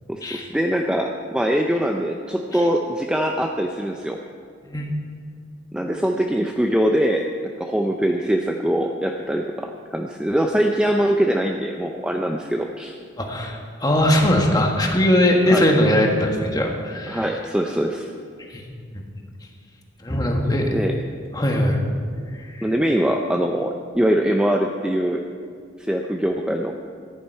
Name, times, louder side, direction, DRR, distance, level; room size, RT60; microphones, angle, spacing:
voice 1, 0.1-4.2 5.7-7.3 7.6-13.0 15.5-15.6 17.1-18.1 20.7-20.9 22.6-25.2 25.8-26.7, equal, 5° right, 2 dB, 0.4 m, -22 dB
voice 2, 13.2-17.2 18.5-18.6 19.2-19.3 20.0-20.6 21.3-21.8 22.3-22.6, left 1 dB, 20° left, 1 dB, 1.4 m, -20 dB
14.0 x 10.5 x 4.6 m, 2.2 s
head